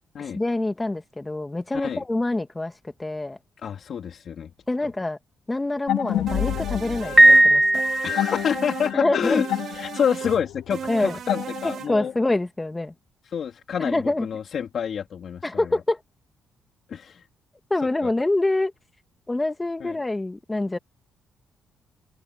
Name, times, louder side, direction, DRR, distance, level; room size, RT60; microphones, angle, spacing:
voice 1, 0.2-2.7 3.0-3.4 4.7-5.2 5.5-7.6 8.9-9.4 10.9-11.2 11.6-12.9 13.8-14.3 15.4-16.0 17.7-18.7 19.3-20.8, left 2 dB, 15° left, 1.8 m, -25 dB
voice 2, 3.6-4.5 8.0-9.5 9.7-12.1 13.3-15.7 16.9-17.3 18.0-18.1 19.8-20.0, left 7 dB, 55° left, 3.3 m, -28 dB
sound 1, 5.9-12.1, left 13 dB, 90° left, 4.2 m, -30 dB
sound 2, 6.3-7.5 7.7-8.9 9.2-10.4 10.7-11.9, right 8 dB, 60° right, 2.2 m, -35 dB
Piano, 7.2-8.6, right 1 dB, 10° right, 0.5 m, -16 dB
open air
cardioid pair, 90°, 0 cm